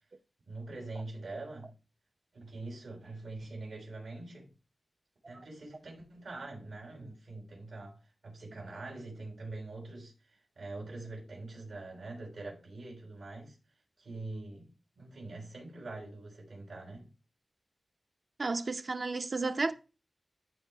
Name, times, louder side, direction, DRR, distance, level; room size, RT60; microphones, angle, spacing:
voice 1, 0.5-1.7 2.3-4.5 5.3-13.6 14.0-17.1, right 2 dB, 85° right, 5.5 m, -44 dB
voice 2, 18.4-19.7, right 3 dB, 50° right, 0.8 m, -32 dB
14.0 x 4.9 x 3.6 m
wide cardioid pair, 80°, 0 cm